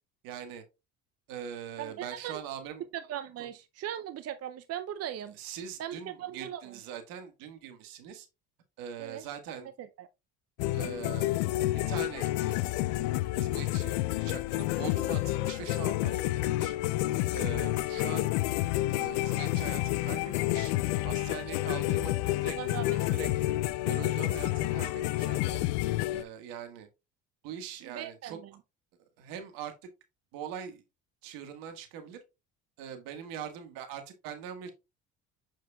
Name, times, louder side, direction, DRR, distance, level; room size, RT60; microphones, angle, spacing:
voice 1, 0.2-0.6 1.3-2.8 3.4-3.5 5.3-8.3 8.8-9.7 10.7-11.3 11.9-12.6 13.3-16.7 17.3-18.4 18.7-20.7 21.0-22.1 22.4-23.4 23.9-25.6 26.1-26.9 27.4-28.4 29.2-29.9 30.3-30.8 31.2-32.2 32.8-34.7, right 8 dB, 75° right, 1.7 m, -42 dB
voice 2, 1.8-2.4 2.9-5.4 5.8-6.6 9.0-9.2 9.8-10.1 22.6-23.0 27.8-28.5, right 11 dB, 45° right, 0.6 m, -39 dB
sound 1, 10.6-26.2, left 16 dB, 80° left, 0.5 m, -29 dB
7.3 x 6.2 x 2.3 m
hypercardioid pair, 65°, 35 cm